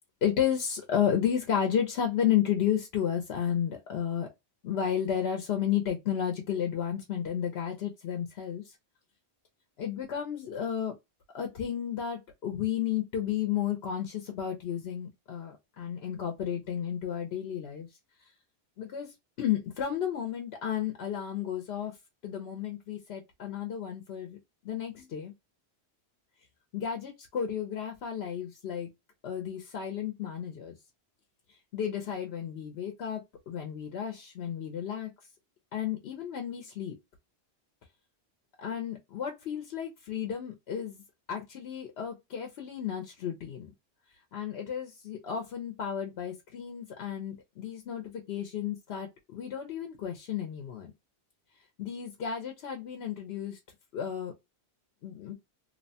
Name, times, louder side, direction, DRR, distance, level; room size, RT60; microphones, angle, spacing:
voice 1, 0.2-4.3 4.6-8.8 9.8-10.9 11.3-17.9 18.8-21.9 22.2-24.4 24.6-25.3 26.7-28.9 29.2-30.8 31.7-35.1 35.7-36.9 38.6-41.0 41.3-43.7 44.3-50.9 51.8-53.6 53.9-54.3 55.0-55.3, left 9 dB, 75° left, 0.9 m, -32 dB
2.8 x 2.1 x 2.7 m
omnidirectional pair, 1.1 m